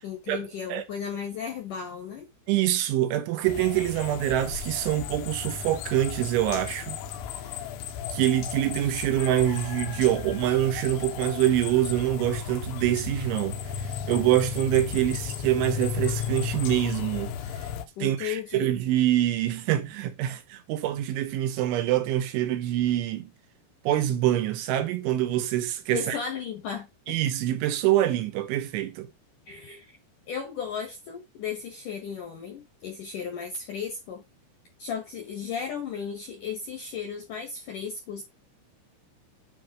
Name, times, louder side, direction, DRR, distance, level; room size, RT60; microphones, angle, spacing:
voice 1, 0.0-2.3 14.9-15.0 18.0-18.7 25.9-27.2 29.5-30.0 30.3-34.2 34.8-38.2, left 7 dB, 65° left, 2.1 m, -35 dB
voice 2, 2.5-7.0 8.1-17.3 17.6-17.7 18.0-23.3 23.9-26.2 27.1-29.1, right 13 dB, 80° right, 3.4 m, -25 dB
sound 1, 3.4-17.9, left 8 dB, 85° left, 3.3 m, -34 dB
9.5 x 3.2 x 6.2 m
omnidirectional pair, 5.5 m